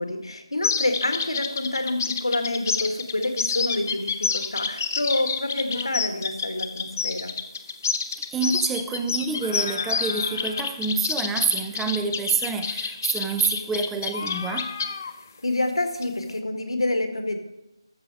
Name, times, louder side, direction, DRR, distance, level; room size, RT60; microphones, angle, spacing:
voice 1, 0.0-7.3 15.4-17.4, left 2 dB, 80° left, 6 dB, 1.8 m, -27 dB
sound 1, 0.6-15.1 16.0-16.4, left 5 dB, 30° left, 0.6 m, -29 dB
voice 2, 8.3-14.7, right 5 dB, 5° right, 7 dB, 0.3 m, -27 dB
13.5 x 6.5 x 4.8 m, 0.92 s
figure-of-eight pair, 165°, 3 cm